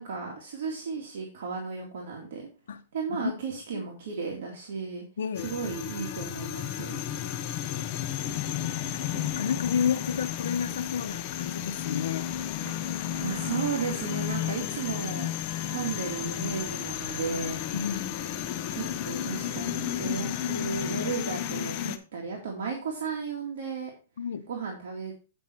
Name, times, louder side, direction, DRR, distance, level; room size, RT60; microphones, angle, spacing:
voice 1, 0.0-2.5 2.9-5.0 5.4-6.9 12.6-12.7 13.2-15.3 15.7-17.6 18.7-23.9 24.5-25.1, right 5 dB, 60° right, 2.3 m, -34 dB
voice 2, 5.2-5.6 9.1-12.4 17.7-18.3 24.2-24.5, left 7 dB, 80° left, 0.8 m, -31 dB
sound 1, 5.4-22.0, left 10 dB, 30° left, 0.7 m, -33 dB
8.7 x 5.5 x 4.5 m
hypercardioid pair, 160°, 0 cm